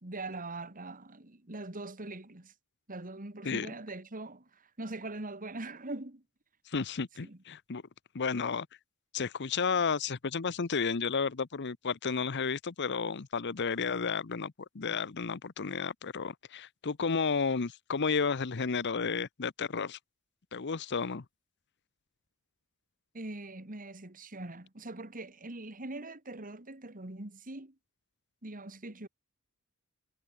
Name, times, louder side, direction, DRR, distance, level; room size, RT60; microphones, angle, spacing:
voice 1, 0.0-2.5 2.9-6.2 7.2-7.4 23.1-27.8 28.4-29.1, right 2 dB, 40° right, 2.2 m, -42 dB
voice 2, 6.7-7.8 8.1-8.7 9.1-20.0 20.5-21.2, left 5 dB, 50° left, 0.8 m, -32 dB
head